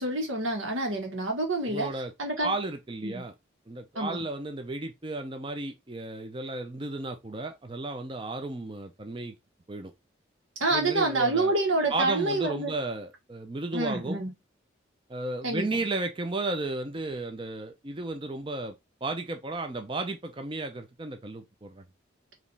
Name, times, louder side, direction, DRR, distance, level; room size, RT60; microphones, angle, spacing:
voice 1, 0.0-1.9 2.2-2.5 3.0-3.2 4.0-4.2 10.6-12.7 13.7-14.3 15.4-15.7, right 2 dB, 90° right, 1.8 m, -27 dB
voice 2, 1.6-2.1 2.4-3.3 3.7-9.3 9.7-9.9 10.7-11.5 11.9-14.2 15.1-21.8, right 2 dB, 25° right, 0.5 m, -34 dB
4.9 x 2.9 x 3.3 m
head